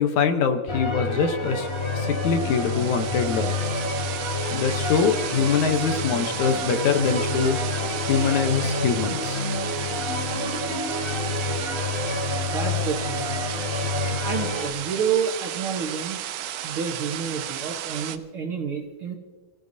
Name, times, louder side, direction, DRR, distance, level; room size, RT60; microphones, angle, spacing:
voice 1, 0.0-1.7 2.0-3.5 4.5-7.6 8.1-9.4, left 6 dB, 70° left, 7 dB, 2.3 m, -23 dB
sound 1, 0.7-14.7, left 2 dB, 20° left, 0.8 m, -28 dB
sound 2, 1.5-18.2, right 11 dB, 75° right, 2.1 m, -34 dB
voice 2, 12.1-13.2 14.2-16.2 16.6-19.2, right 6 dB, 60° right, 0 dB, 1.5 m, -29 dB
29.0 x 16.0 x 2.7 m, 1.4 s
omnidirectional pair, 3.7 m